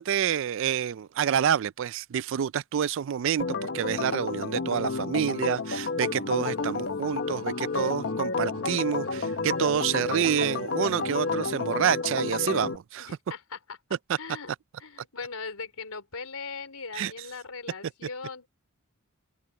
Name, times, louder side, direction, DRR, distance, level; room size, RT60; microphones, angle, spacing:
voice 1, 0.0-13.1 17.0-17.1, right 8 dB, 60° right, 0.3 m, -28 dB
Organ, 3.4-12.8, left 4 dB, 50° left, 0.8 m, -30 dB
sound 1, 6.4-11.5, right 2 dB, 85° right, 3.7 m, -52 dB
voice 2, 13.0-13.8 14.2-14.5 14.8-18.5, left 4 dB, 85° left, 4.3 m, -39 dB
head